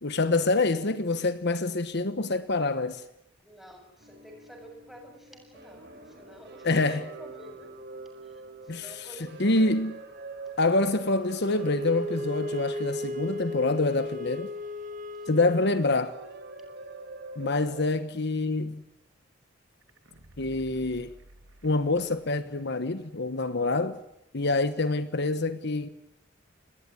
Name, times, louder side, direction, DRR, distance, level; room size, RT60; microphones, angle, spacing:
voice 1, 0.0-3.0 6.6-7.0 8.7-9.1 9.4-10.0 10.6-14.5 15.3-16.2 17.4-18.8 20.4-21.1 21.6-24.0 24.3-25.9, left 2 dB, 55° left, 1.2 m, -26 dB
voice 2, 3.4-7.8 8.2-9.7 10.4-10.5 15.2-15.3, right 1 dB, ahead, 7.7 m, -50 dB
sound 1, 4.0-17.8, right 3 dB, 60° right, 6.2 m, -45 dB
Wind instrument woodwind instrument, 11.4-15.9, left 1 dB, 40° right, 2.7 m, -35 dB
sound 2, 19.8-22.7 23.0-23.1, right 1 dB, 85° right, 2.5 m, -53 dB
29.0 x 20.0 x 9.8 m
head